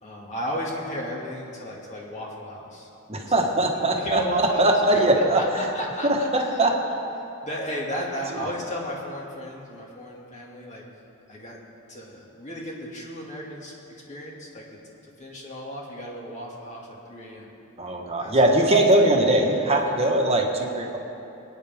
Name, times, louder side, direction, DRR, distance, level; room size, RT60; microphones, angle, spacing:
voice 1, 0.0-3.5 3.9-5.0 5.3-6.7 7.4-10.8 11.3-11.6 11.9-13.7 14.1-14.6 15.2-17.5 18.2-18.4, equal, 35° left, -3 dB, 2.2 m, -34 dB
voice 2, 3.1-4.2 4.6-5.6 6.3-6.7 17.8-21.0, right 1 dB, 30° right, 1 dB, 1.4 m, -21 dB
24.0 x 9.6 x 3.6 m, 2.9 s
head